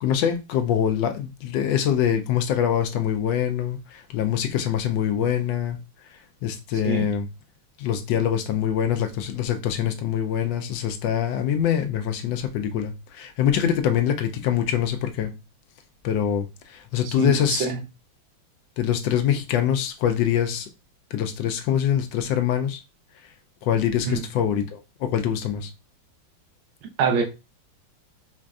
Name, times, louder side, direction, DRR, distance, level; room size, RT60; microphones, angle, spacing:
voice 1, 0.0-5.8 6.4-7.3 7.8-15.3 16.0-17.7 18.8-20.7 21.1-22.8 23.6-25.7, left 9 dB, 75° left, 1.2 m, -24 dB
voice 2, 17.0-17.8 24.0-24.2 27.0-27.2, right 5 dB, 75° right, 1.5 m, -24 dB
5.2 x 2.5 x 2.3 m
omnidirectional pair, 2.2 m